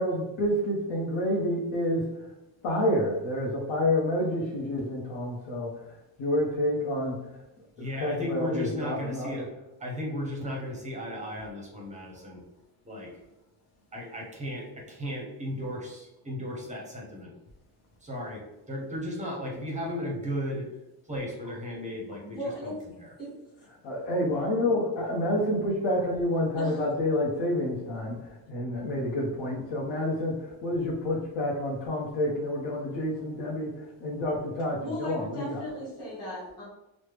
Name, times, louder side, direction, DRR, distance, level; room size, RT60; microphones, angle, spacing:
voice 1, 0.0-2.3 2.6-7.4 7.8-9.4 23.8-35.6, left 1 dB, 75° left, -4 dB, 0.8 m, -29 dB
voice 2, 7.8-9.5 9.8-12.4 12.8-13.1 13.9-17.3 18.0-18.4 18.7-20.7 21.1-22.7 23.0-23.1, left 1 dB, 15° right, -2 dB, 0.5 m, -35 dB
voice 3, 22.2-22.7 23.2-23.3 26.6-26.9 34.8-36.6, equal, 10° left, -9 dB, 1.0 m, -36 dB
3.1 x 2.0 x 3.2 m, 0.97 s
cardioid pair, 175°, 46 cm